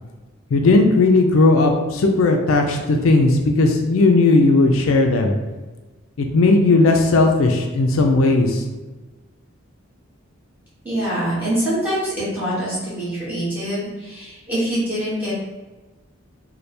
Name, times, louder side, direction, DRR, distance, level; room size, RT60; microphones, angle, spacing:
voice 1, 0.5-5.3 6.2-8.6, left 2 dB, 75° left, 3 dB, 0.4 m, -16 dB
voice 2, 10.8-15.3, right 1 dB, 10° right, -10 dB, 1.4 m, -24 dB
3.3 x 2.2 x 4.2 m, 1.2 s
head